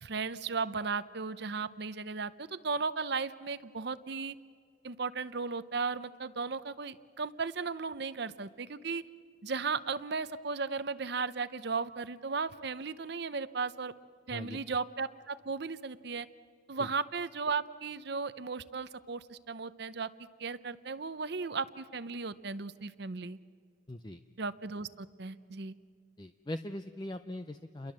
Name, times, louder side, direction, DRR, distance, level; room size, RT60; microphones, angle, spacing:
voice 1, 0.0-4.4 4.8-9.0 9.4-13.9 14.3-16.3 16.7-20.1 20.4-23.4 24.4-25.7, right 4 dB, 55° right, 13 dB, 0.7 m, -36 dB
voice 2, 23.9-24.2 26.2-27.9, left 1 dB, 20° left, 8 dB, 0.6 m, -40 dB
29.5 x 22.5 x 7.5 m, 2.1 s
head